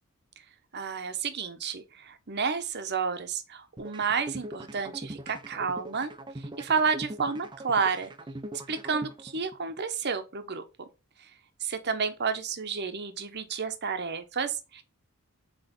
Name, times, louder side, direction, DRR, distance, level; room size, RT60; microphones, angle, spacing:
voice 1, 0.7-6.1 6.4-8.1 8.7-10.6 11.7-14.8, right 5 dB, 50° right, 1.0 m, -31 dB
sound 1, 3.8-9.8, right 1 dB, 20° right, 0.7 m, -41 dB
8.1 x 3.3 x 3.9 m
head